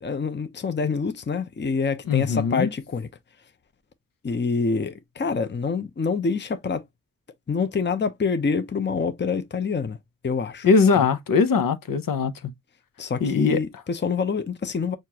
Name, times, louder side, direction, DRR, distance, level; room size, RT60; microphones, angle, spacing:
voice 1, 0.0-3.1 4.2-6.8 7.5-10.0 10.2-10.7 11.0-11.1 13.0-15.0, left 5 dB, 35° left, 0.7 m, -26 dB
voice 2, 2.1-2.7 10.6-12.5 13.2-13.6, left 5 dB, 85° left, 0.7 m, -21 dB
6.5 x 2.5 x 2.8 m
wide cardioid pair, 110°, 33 cm